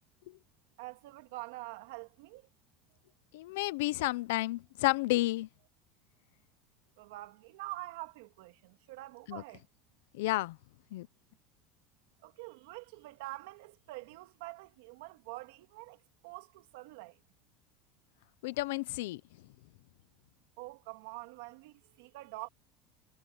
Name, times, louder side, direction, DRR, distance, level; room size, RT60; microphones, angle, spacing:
voice 1, 0.8-2.5 7.0-9.7 12.2-17.2 20.6-22.5, right 20 dB, 80° right, 2.4 m, -46 dB
voice 2, 3.3-5.5 9.3-9.4 10.2-10.6 10.9-11.1 18.4-19.2, left 19 dB, 85° left, 0.7 m, -31 dB
supercardioid pair, 140°, 0 cm